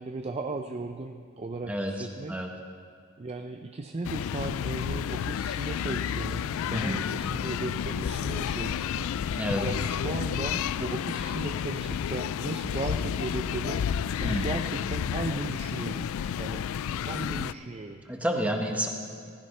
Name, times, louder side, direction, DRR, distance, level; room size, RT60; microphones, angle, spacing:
voice 1, 0.0-2.5 3.2-13.9 14.2-16.1 16.4-16.6 17.0-18.0, right 3 dB, 30° right, 5 dB, 0.4 m, -36 dB
voice 2, 1.7-2.5 6.7-7.0 9.4-9.6 14.2-14.5 18.1-18.9, equal, 5° right, 1 dB, 1.3 m, -30 dB
sound 1, 4.0-17.5, left 8 dB, 65° left, 0.3 m, -31 dB
16.0 x 15.0 x 3.3 m, 2.3 s
head